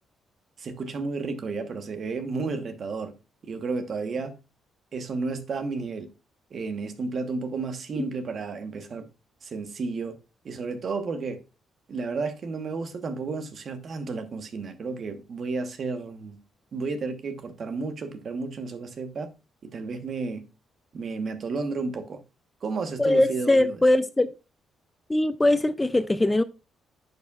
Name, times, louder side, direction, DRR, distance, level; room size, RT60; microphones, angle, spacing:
voice 1, 0.6-3.1 3.4-4.4 4.9-6.1 6.5-9.1 9.4-10.1 10.4-11.4 11.9-16.4 16.7-19.3 19.6-20.4 20.9-22.2 22.6-23.8, right 4 dB, 50° right, 1.1 m, -32 dB
voice 2, 23.0-24.3 25.1-26.4, left 1 dB, 15° left, 0.4 m, -21 dB
10.0 x 4.8 x 2.4 m
cardioid pair, 90°, 0 cm